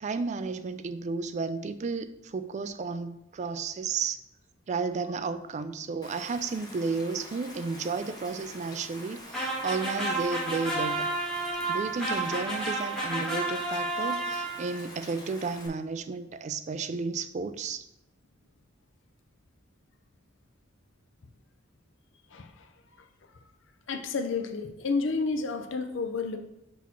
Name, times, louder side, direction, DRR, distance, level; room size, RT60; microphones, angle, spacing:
voice 1, 0.0-4.2 4.7-11.1 11.6-17.9, right 4 dB, 35° right, 11 dB, 0.3 m, -33 dB
Rain, 6.0-15.7, equal, 20° left, 0.9 m, -46 dB
sound 1, 9.3-14.9, right 2 dB, ahead, 1.5 m, -31 dB
voice 2, 22.3-22.7 23.9-26.4, left 4 dB, 65° left, 7 dB, 0.6 m, -30 dB
6.1 x 3.1 x 5.6 m, 0.83 s
head